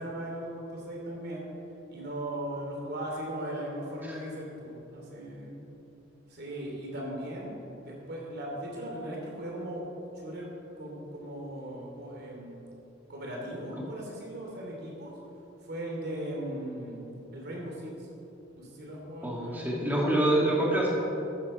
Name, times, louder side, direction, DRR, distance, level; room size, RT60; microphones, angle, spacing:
voice 1, 0.0-1.5 1.9-5.6 6.3-9.8 10.1-10.5 10.8-12.7 13.1-15.1 15.6-18.1 18.6-19.9, right 1 dB, 55° right, -2 dB, 3.0 m, -38 dB
voice 2, 19.2-20.9, right 1 dB, 10° right, -4 dB, 2.3 m, -26 dB
14.0 x 9.8 x 4.4 m, 2.9 s
head